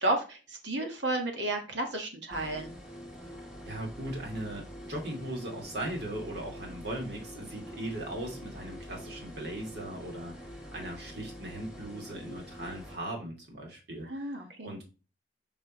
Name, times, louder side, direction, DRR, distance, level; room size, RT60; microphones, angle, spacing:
voice 1, 0.0-2.7 14.1-14.7, right 2 dB, 75° right, 3 dB, 1.7 m, -32 dB
sound 1, 2.3-13.0, equal, 5° right, 1.6 m, -45 dB
voice 2, 3.6-14.4 14.6-14.8, right 1 dB, 60° right, -1 dB, 2.7 m, -39 dB
6.0 x 5.4 x 3.1 m, 0.33 s
head